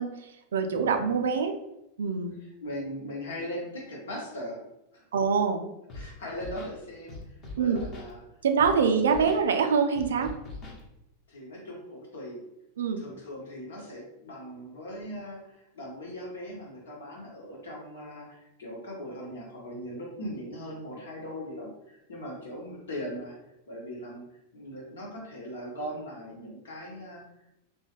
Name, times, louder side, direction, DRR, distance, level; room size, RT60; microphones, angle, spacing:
voice 1, 0.0-1.6 2.0-2.3 5.1-5.6 7.6-7.8 8.4-10.3 12.8-13.0, right 5 dB, 65° right, 5 dB, 0.4 m, -25 dB
voice 2, 0.7-1.1 2.6-4.6 4.9-5.0 5.9-7.2 7.6-8.2 11.3-12.4 13.0-23.4 23.7-24.2 24.5-27.2, equal, 65° left, -2 dB, 1.1 m, -39 dB
Scratching (performance technique), 5.9-6.1 6.3-6.7 7.1-8.1 8.6-8.8 9.0-9.4 10.0-10.8, left 3 dB, 30° left, 1.0 m, -41 dB
3.6 x 2.3 x 3.0 m, 0.87 s
figure-of-eight pair, 90°, 0 cm